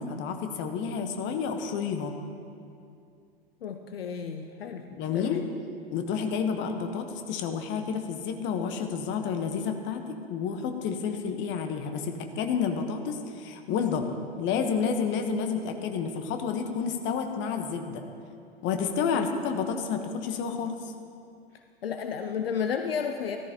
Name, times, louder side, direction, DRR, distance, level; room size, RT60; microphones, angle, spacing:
voice 1, 0.0-2.1 4.9-5.4 5.9-18.0 18.6-20.9, left 6 dB, 40° left, 6 dB, 1.2 m, -30 dB
voice 2, 3.6-4.9 5.1-5.5 19.1-19.2 21.8-23.4, left 7 dB, 75° left, 6 dB, 0.7 m, -32 dB
14.0 x 13.5 x 3.0 m, 2.5 s
figure-of-eight pair, 90°, 30 cm